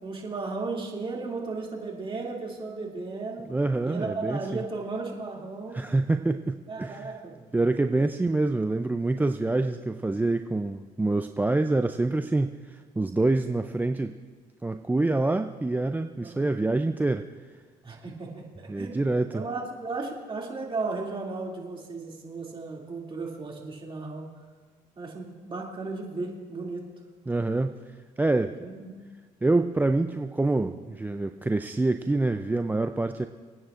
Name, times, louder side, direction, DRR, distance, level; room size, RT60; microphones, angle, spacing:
voice 1, 0.0-3.5 3.8-5.8 6.7-7.5 8.0-8.1 16.2-16.5 17.8-24.3 25.0-26.9 28.6-28.9, right 3 dB, 35° right, -2 dB, 2.6 m, -35 dB
voice 2, 3.5-4.6 5.7-7.1 7.5-14.2 14.6-17.3 18.7-19.4 27.3-27.8 28.2-28.6 29.4-33.3, right 2 dB, 10° right, 7 dB, 0.4 m, -26 dB
26.5 x 9.3 x 2.5 m, 1.5 s
supercardioid pair, 80°, 16 cm